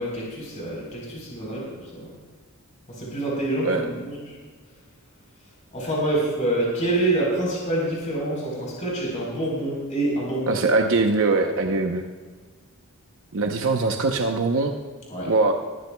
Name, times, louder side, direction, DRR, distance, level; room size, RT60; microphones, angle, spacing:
voice 1, 0.0-2.1 2.9-4.1 5.7-10.6 15.1-15.3, right 1 dB, 35° left, -4 dB, 3.9 m, -26 dB
voice 2, 10.5-12.1 13.3-14.7 15.3-15.5, right 3 dB, 65° right, 3 dB, 0.8 m, -22 dB
19.5 x 13.5 x 2.3 m, 1.5 s
head